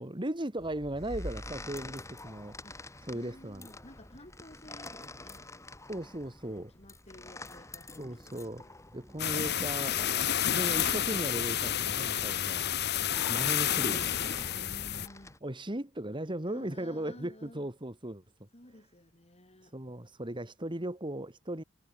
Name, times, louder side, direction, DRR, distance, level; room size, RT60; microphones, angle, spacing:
voice 1, 0.0-2.6 3.1-3.7 5.9-6.7 8.0-8.6 8.9-10.0 10.5-12.7 13.3-14.1 15.4-18.2 19.7-21.6, right 1 dB, 25° right, 2.3 m, -37 dB
sound 1, 0.6-15.4, left 2 dB, 15° left, 4.0 m, -47 dB
voice 2, 3.1-5.5 6.6-8.7 14.5-15.4 16.5-17.7 18.5-19.8, left 1 dB, 30° left, 5.4 m, -53 dB
sound 2, 9.2-15.1, left 10 dB, 55° left, 1.5 m, -30 dB
head